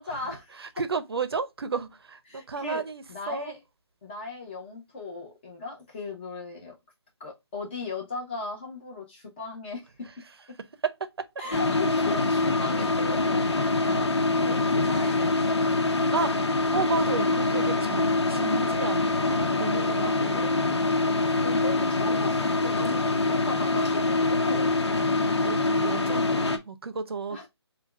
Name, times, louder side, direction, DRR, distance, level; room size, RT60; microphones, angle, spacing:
voice 1, 0.0-0.6 2.3-2.8 3.1-3.6 4.0-6.7 7.2-9.9 11.4-14.1 14.3-15.6 19.9-20.7 21.4-24.9 27.3-27.5, left 3 dB, 20° left, 1.2 m, -37 dB
voice 2, 0.6-3.5 10.8-10.9 16.1-16.3 16.7-20.8 21.5-21.6 25.4-27.4, right 5 dB, 60° right, 0.7 m, -32 dB
sound 1, 11.5-26.6, left 2 dB, 70° left, 1.1 m, -25 dB
7.2 x 2.5 x 2.5 m
hypercardioid pair, 170°, 14 cm